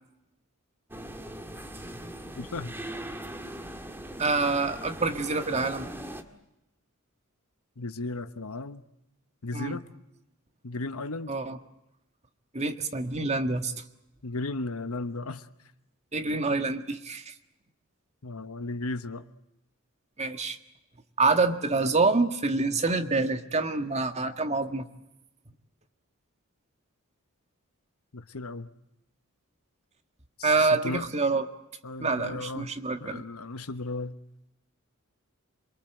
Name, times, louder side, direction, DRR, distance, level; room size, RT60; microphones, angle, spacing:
sound 1, 0.9-6.2, right 1 dB, 10° right, 1.9 m, -40 dB
voice 1, 2.4-2.7 7.8-8.8 9.4-9.9 10.6-11.3 14.2-15.5 18.2-19.2 28.1-28.7 30.4-31.3 31.8-32.7 33.0-34.2, left 2 dB, 85° left, 10 dB, 1.1 m, -35 dB
voice 2, 4.2-5.9 9.5-9.8 11.3-11.6 12.5-13.7 16.1-17.3 20.2-20.6 21.2-24.9 30.4-31.5 32.0-33.2, right 3 dB, 30° right, 6 dB, 1.7 m, -26 dB
27.5 x 22.5 x 8.0 m, 0.87 s
head